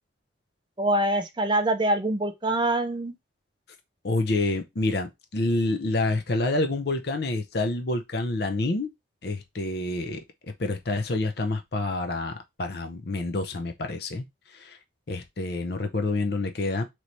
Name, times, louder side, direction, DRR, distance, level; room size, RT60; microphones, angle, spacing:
voice 1, 0.8-3.1, right 1 dB, 25° right, 0.5 m, -24 dB
voice 2, 4.0-8.9 9.2-10.2 10.6-14.2 14.5-14.8 15.1-16.8, left 2 dB, 55° left, 0.7 m, -28 dB
3.2 x 3.1 x 4.0 m
head